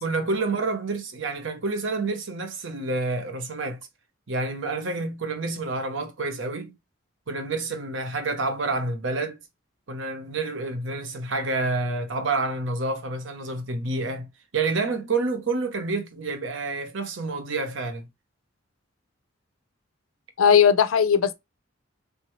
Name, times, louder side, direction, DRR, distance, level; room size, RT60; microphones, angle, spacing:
voice 1, 0.0-3.8 4.3-6.8 7.3-9.4 9.9-14.3 14.5-18.1, right 3 dB, 65° right, 0.7 m, -28 dB
voice 2, 20.4-21.3, left 7 dB, 90° left, 0.5 m, -18 dB
3.5 x 2.6 x 3.0 m
head